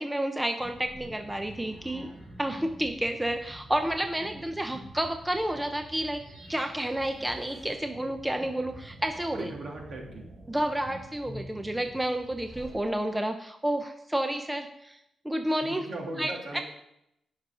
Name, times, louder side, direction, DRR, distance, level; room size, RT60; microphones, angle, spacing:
voice 1, 0.0-2.1 2.4-6.2 6.5-9.5 10.5-15.0 15.2-15.8 16.2-16.6, right 1 dB, 10° right, 6 dB, 0.7 m, -30 dB
sound 1, 0.6-12.9, right 1 dB, 30° right, 4.2 m, -47 dB
voice 2, 9.3-10.3 15.6-16.6, right 2 dB, 60° right, -1 dB, 2.8 m, -38 dB
17.0 x 6.4 x 3.8 m, 0.80 s
cardioid pair, 110°, 0 cm